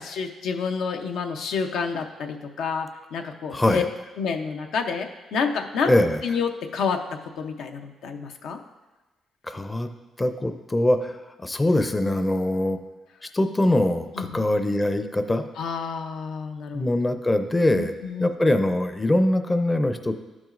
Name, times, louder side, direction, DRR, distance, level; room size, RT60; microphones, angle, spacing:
voice 1, 0.0-3.8 4.2-5.9 6.2-8.6 14.2-14.4 15.6-16.8 17.7-18.3, left 5 dB, 80° left, 5 dB, 0.6 m, -29 dB
voice 2, 3.5-3.9 5.9-6.2 9.4-9.9 10.2-12.8 13.3-15.4 16.7-17.9 18.2-20.1, left 1 dB, 20° left, 8 dB, 0.5 m, -22 dB
12.0 x 6.1 x 2.5 m, 1.1 s
cardioid pair, 90°, 0 cm